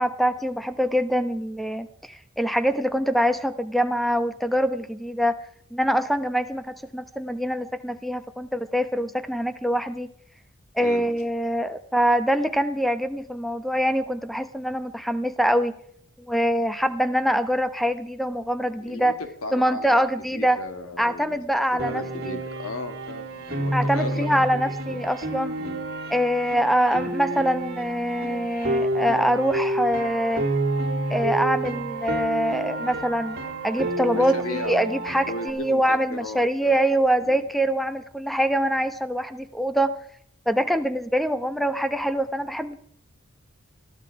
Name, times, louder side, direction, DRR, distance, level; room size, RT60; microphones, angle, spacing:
voice 1, 0.0-5.4 5.7-10.1 10.7-15.7 16.2-19.2 19.5-20.6 21.0-22.4 23.7-25.5 26.1-30.4 31.1-33.4 33.6-39.9 40.5-42.8, equal, ahead, 11 dB, 1.0 m, -24 dB
voice 2, 18.8-19.1 19.4-20.0 20.3-21.4 21.7-25.1 25.6-25.8 34.1-34.8 35.2-36.8 37.2-37.5, left 2 dB, 75° left, 8 dB, 2.2 m, -36 dB
Piano, 21.8-35.5, right 2 dB, 45° right, 2.6 m, -29 dB
21.0 x 14.0 x 4.8 m, 0.63 s
head